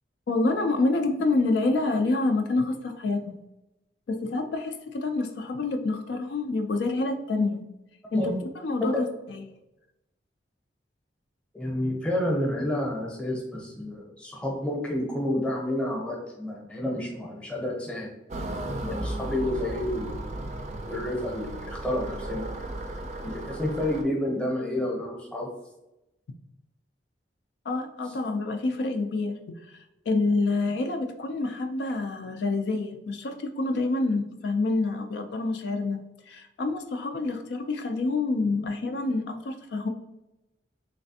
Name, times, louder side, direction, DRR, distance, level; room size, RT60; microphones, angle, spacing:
voice 1, 0.3-3.4 4.1-7.6 8.1-9.4 27.7-29.4 29.7-36.0 36.3-39.9, left 3 dB, 70° left, 6 dB, 0.4 m, -27 dB
voice 2, 11.5-18.1 18.8-20.3 20.9-22.4 23.2-25.5, left 1 dB, 5° left, -1 dB, 0.7 m, -30 dB
sound 1, 18.3-24.0, right 1 dB, 40° right, 0.4 m, -35 dB
3.2 x 3.2 x 2.7 m, 0.95 s
head